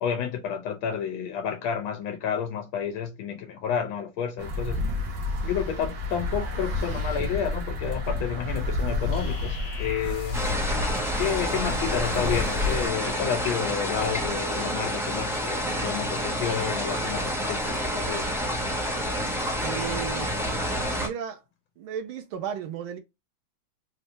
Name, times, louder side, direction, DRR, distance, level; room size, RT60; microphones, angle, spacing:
voice 1, 0.0-4.9 5.4-10.4 11.2-18.3, left 8 dB, 80° left, 1.4 m, -30 dB
sound 1, 4.4-12.9, left 2 dB, 55° right, 1.6 m, -30 dB
sound 2, 9.1-10.7, left 5 dB, 50° left, 1.0 m, -38 dB
sound 3, 10.3-21.1, equal, ahead, 0.9 m, -29 dB
voice 2, 19.6-20.3 20.9-21.4 21.8-23.0, right 8 dB, 85° right, 1.6 m, -34 dB
4.2 x 2.6 x 3.3 m
omnidirectional pair, 2.2 m